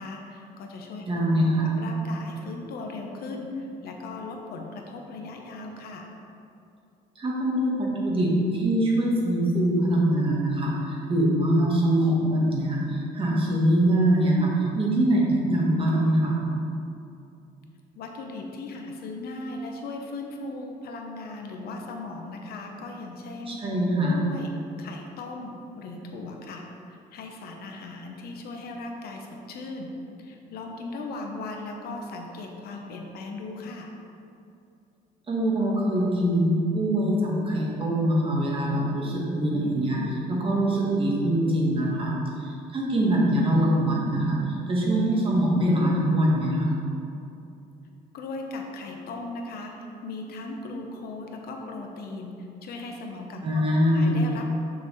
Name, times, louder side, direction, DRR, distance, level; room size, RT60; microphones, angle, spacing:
voice 1, 0.0-1.0 1.3-6.1 17.9-23.6 24.0-24.5 24.8-29.9 30.2-33.9 48.1-52.3 52.6-54.5, left 2 dB, 65° left, 2 dB, 0.9 m, -38 dB
voice 2, 1.0-1.8 7.2-16.4 23.5-24.2 35.3-46.8 53.4-54.2, right 1 dB, 30° right, -4 dB, 1.5 m, -23 dB
6.4 x 6.0 x 3.2 m, 2.7 s
cardioid pair, 110°, 17 cm